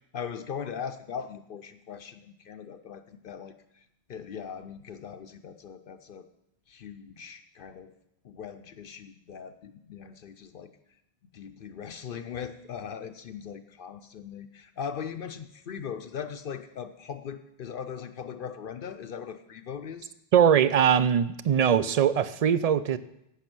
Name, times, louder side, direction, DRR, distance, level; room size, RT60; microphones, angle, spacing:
voice 1, 0.1-6.3 6.7-7.9 8.2-10.7 11.3-20.1, left 7 dB, 65° left, 8 dB, 0.7 m, -40 dB
voice 2, 20.3-23.0, right 8 dB, 50° right, 15 dB, 0.5 m, -21 dB
11.5 x 8.3 x 6.0 m, 0.79 s
omnidirectional pair, 1.0 m